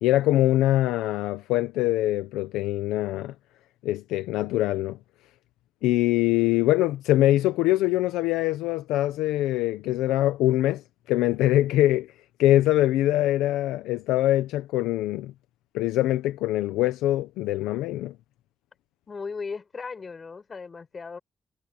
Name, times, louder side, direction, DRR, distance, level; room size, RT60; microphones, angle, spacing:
voice 1, 0.0-3.3 3.8-5.0 5.8-10.8 11.1-12.1 12.4-15.3 15.7-18.1, left 15 dB, 90° left, 0.9 m, -23 dB
voice 2, 19.1-21.2, left 5 dB, 50° left, 6.4 m, -36 dB
supercardioid pair, 45°, 0 cm